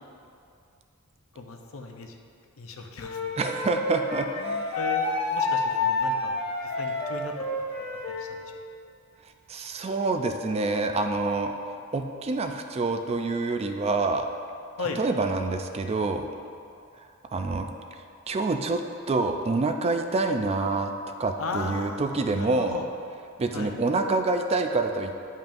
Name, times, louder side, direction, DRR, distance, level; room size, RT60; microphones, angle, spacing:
voice 1, 1.3-2.2 2.6-3.4 4.8-5.1 5.3-7.3 8.2-8.4 14.8-15.0 21.4-22.9 23.5-23.7, left 3 dB, 70° left, 3 dB, 0.7 m, -36 dB
Wind instrument woodwind instrument, 3.0-8.3, left 3 dB, 50° left, 1.4 m, -29 dB
voice 2, 3.4-4.8 9.5-14.3 15.0-16.3 17.3-17.7 18.3-18.8 19.1-22.8 23.4-25.2, right 3 dB, 30° right, 6 dB, 0.3 m, -27 dB
10.5 x 5.4 x 2.6 m, 2.5 s
head